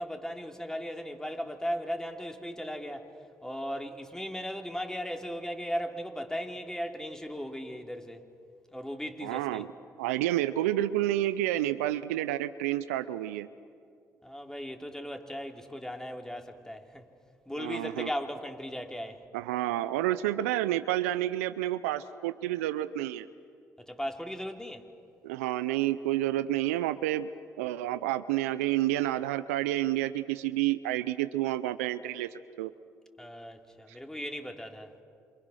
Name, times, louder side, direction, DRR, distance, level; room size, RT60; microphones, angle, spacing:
voice 1, 0.0-3.1 3.4-8.2 8.7-9.6 14.2-17.1 17.5-19.2 23.8-24.8 33.2-34.9, equal, 5° left, 3.2 m, -37 dB
voice 2, 9.2-9.7 10.0-13.5 17.6-18.1 19.3-23.3 25.2-27.3 27.6-32.7, right 14 dB, 85° right, 0.6 m, -29 dB
27.5 x 27.5 x 6.4 m
hypercardioid pair, 45°, 7 cm